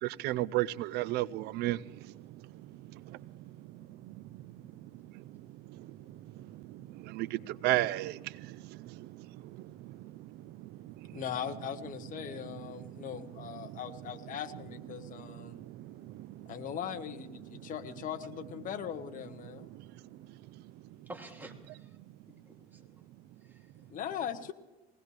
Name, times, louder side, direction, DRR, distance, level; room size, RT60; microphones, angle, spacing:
voice 1, 0.0-1.8 2.9-3.2 3.7-4.2 5.7-10.0 10.3-10.9 12.9-13.0 13.7-13.8 15.0-16.5, right 17 dB, 70° right, 0.5 m, -35 dB
voice 2, 11.1-15.6 16.5-19.7 23.9-24.5, left 9 dB, 50° left, 1.4 m, -40 dB
voice 3, 21.1-22.0 22.3-23.0 23.4-23.7, right 1 dB, 10° right, 2.8 m, -50 dB
20.5 x 18.0 x 3.3 m
cardioid pair, 110°, 18 cm